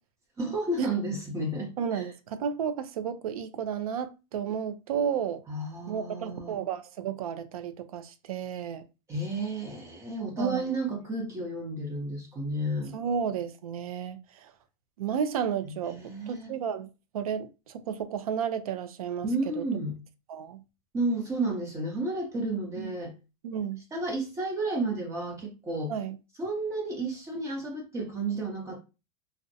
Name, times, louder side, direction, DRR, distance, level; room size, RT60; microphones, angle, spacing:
voice 1, 0.4-2.0 5.5-6.5 9.1-12.9 15.7-16.6 19.2-19.9 20.9-23.1 23.9-25.9 26.4-28.8, right 2 dB, 15° right, 0.6 m, -32 dB
voice 2, 1.8-5.4 5.9-8.9 10.4-10.7 12.9-14.5 15.0-16.0 16.3-16.9 17.1-19.3 19.6-19.7 20.3-20.6 22.8-22.9 23.4-23.8 25.9-26.2, right 8 dB, 90° right, 0.5 m, -32 dB
2.6 x 2.0 x 2.6 m
supercardioid pair, 145°, 18 cm